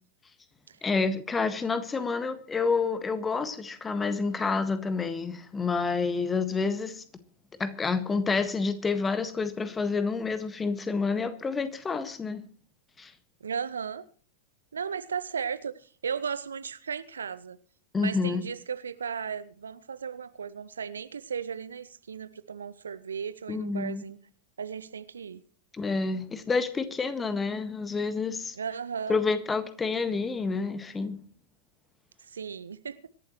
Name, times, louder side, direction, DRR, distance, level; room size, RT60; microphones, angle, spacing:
voice 1, 0.8-7.0 7.6-12.4 13.0-13.1 17.9-18.5 23.5-24.0 25.7-28.5 29.1-31.2, left 4 dB, 15° left, 1.6 m, -29 dB
voice 2, 13.4-14.0 14.7-17.6 18.0-24.2 24.6-25.4 28.5-29.2 32.2-33.1, right 6 dB, 70° right, 0.7 m, -36 dB
25.5 x 11.5 x 3.1 m
figure-of-eight pair, 90°, 0 cm